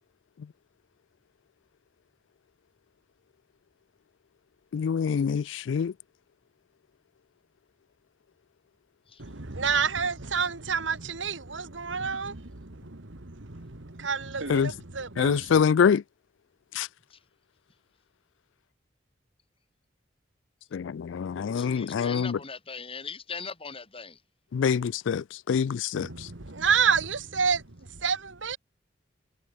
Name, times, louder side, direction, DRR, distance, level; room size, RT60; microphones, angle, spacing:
voice 1, 4.7-5.9 14.5-14.7 15.2-16.0 16.7-16.9 20.7-22.4 24.5-26.3, left 7 dB, 75° left, 0.4 m, -25 dB
voice 2, 9.2-15.5 26.0-27.6 28.0-28.6, right 6 dB, 80° right, 1.9 m, -29 dB
voice 3, 21.6-24.2, left 5 dB, 30° left, 3.3 m, -40 dB
head